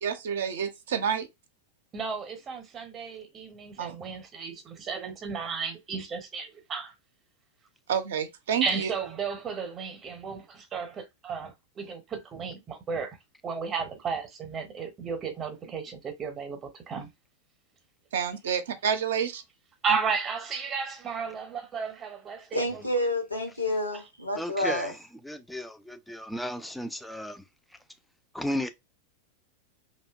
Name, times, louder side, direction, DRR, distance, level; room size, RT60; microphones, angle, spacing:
voice 1, 0.0-1.3 3.8-4.0 7.9-8.9 18.1-19.4, right 8 dB, 60° right, 0.4 m, -29 dB
voice 2, 1.9-6.9 8.6-13.2 13.4-17.1 19.8-22.8, right 5 dB, 25° right, 0.7 m, -34 dB
voice 3, 22.5-25.0, left 1 dB, 90° left, 0.7 m, -29 dB
voice 4, 24.4-24.9 25.3-27.4 28.3-28.7, equal, 5° left, 0.3 m, -34 dB
2.7 x 2.2 x 2.2 m
figure-of-eight pair, 90°, 0 cm